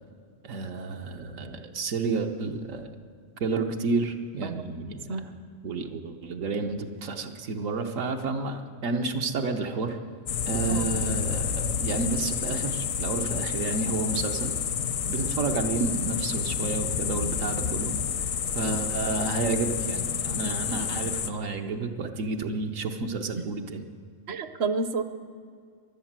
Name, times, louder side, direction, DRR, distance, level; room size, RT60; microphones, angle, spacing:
voice 1, 0.4-2.9 3.4-5.3 5.6-10.0 10.5-14.5 15.1-17.9 18.5-23.8, right 3 dB, 80° right, 4 dB, 1.4 m, -30 dB
sound 1, 10.3-21.3, left 7 dB, 80° left, 1.2 m, -29 dB
voice 2, 24.3-25.0, right 4 dB, 60° right, 10 dB, 1.0 m, -29 dB
22.5 x 8.0 x 7.4 m, 2.2 s
omnidirectional pair, 1.3 m